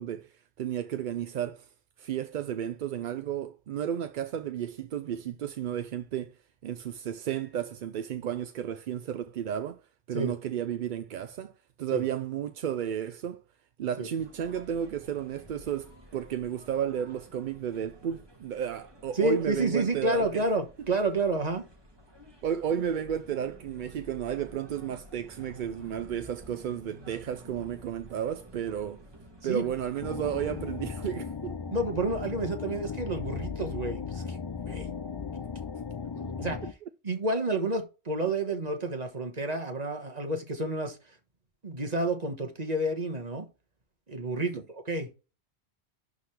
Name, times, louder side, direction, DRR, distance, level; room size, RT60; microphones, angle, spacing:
voice 1, 0.0-1.7 2.0-6.3 6.6-9.8 10.1-11.5 11.8-13.4 13.8-20.4 22.4-29.0 29.4-31.6 44.5-44.6, right 9 dB, 60° right, 0.6 m, -33 dB
sound 1, 14.2-31.0, equal, 25° right, 1.6 m, -52 dB
voice 2, 19.1-21.7 29.4-29.7 31.7-34.4 34.7-34.9 36.1-36.6 37.0-41.2 41.6-43.5 44.1-45.2, right 2 dB, 40° right, 1.4 m, -30 dB
sound 2, 30.0-36.7, left 6 dB, 35° left, 0.4 m, -36 dB
11.5 x 3.8 x 3.3 m
omnidirectional pair, 1.1 m